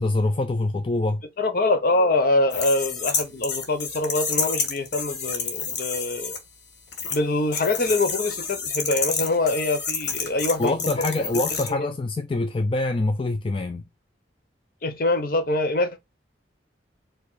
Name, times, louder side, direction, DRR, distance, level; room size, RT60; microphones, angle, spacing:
voice 1, 0.0-1.2 10.6-13.8, left 2 dB, 30° left, 0.4 m, -25 dB
voice 2, 1.4-6.3 7.1-11.1 11.7-11.9 14.8-16.0, left 2 dB, 50° left, 0.8 m, -24 dB
sound 1, 2.5-6.4 6.9-7.2 7.5-11.7, left 5 dB, 70° left, 1.3 m, -29 dB
4.7 x 2.4 x 4.1 m
head